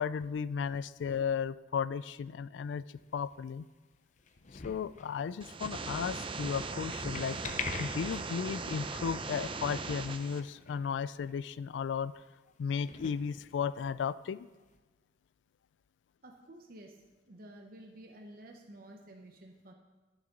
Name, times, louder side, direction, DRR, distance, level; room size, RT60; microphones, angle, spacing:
voice 1, 0.0-2.8 3.1-3.7 4.5-7.4 7.8-12.2 12.6-14.5, left 6 dB, 85° left, 17 dB, 0.3 m, -35 dB
sound 1, 3.0-3.6 4.2-5.1 6.2-8.6 8.9-9.0 9.5-9.6 9.8-9.9 10.2-11.0 11.2-11.3 12.2-12.3 12.7-13.9 14.7-14.8, left 4 dB, 45° left, 0.8 m, -44 dB
sound 2, 5.4-10.4, right 3 dB, 30° right, 0.6 m, -39 dB
voice 2, 16.2-17.0 17.3-19.7, right 1 dB, 55° right, 1 dB, 0.9 m, -51 dB
11.5 x 7.2 x 5.2 m, 1.3 s
head